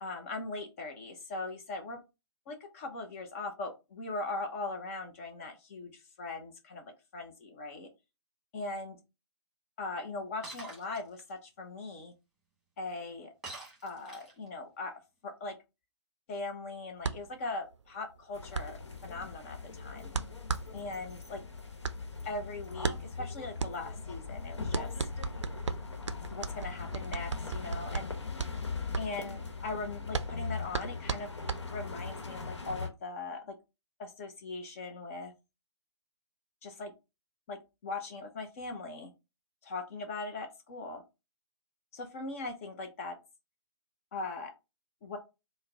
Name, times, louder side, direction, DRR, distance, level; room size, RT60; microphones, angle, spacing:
voice 1, 0.0-2.0 2.5-7.9 8.5-9.0 9.8-12.1 12.8-13.3 13.8-15.5 16.3-20.1 20.7-21.4 22.2-24.9 26.3-28.1 29.0-31.3 31.7-33.6 34.0-35.3 36.6-36.9 37.5-39.1 39.6-41.0 41.9-43.2 44.1-44.5 45.0-45.2, left 3 dB, 30° left, 5 dB, 0.5 m, -40 dB
Shatter, 10.4-11.0 13.4-14.5, right 2 dB, 5° right, 1.2 m, -45 dB
sound 1, 17.0-32.1, right 5 dB, 80° right, 0.4 m, -37 dB
sound 2, 18.3-32.9, left 4 dB, 75° left, 1.0 m, -40 dB
4.0 x 2.0 x 3.5 m, 0.26 s
figure-of-eight pair, 130°, 15 cm